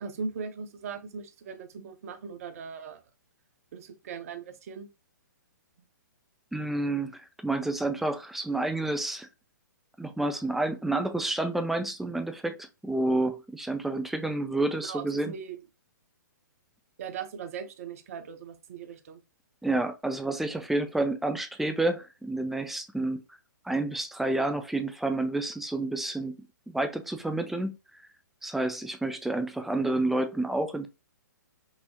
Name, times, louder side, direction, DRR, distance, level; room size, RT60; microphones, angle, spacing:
voice 1, 0.0-3.0 3.7-4.9 14.8-15.6 17.0-19.2 28.8-28.9, right 5 dB, 45° right, 0.8 m, -39 dB
voice 2, 6.5-9.3 10.0-15.3 19.6-23.2 23.6-26.3 26.7-27.8 28.4-30.9, right 2 dB, ahead, 0.4 m, -29 dB
5.5 x 2.0 x 2.8 m
figure-of-eight pair, 120°, 10 cm